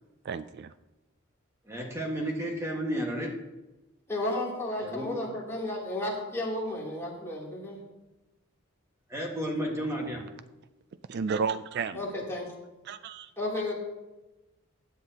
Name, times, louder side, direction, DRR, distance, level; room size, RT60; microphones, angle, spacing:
voice 1, 0.2-0.7 11.1-12.0 12.8-13.3, right 5 dB, 50° right, 13 dB, 0.3 m, -32 dB
voice 2, 1.7-3.3 4.8-5.1 9.1-10.3, equal, 15° right, -1 dB, 1.7 m, -32 dB
voice 3, 4.1-7.8 11.9-12.5 13.4-13.7, left 1 dB, 10° left, -5 dB, 3.1 m, -33 dB
16.0 x 9.4 x 2.9 m, 1.0 s
head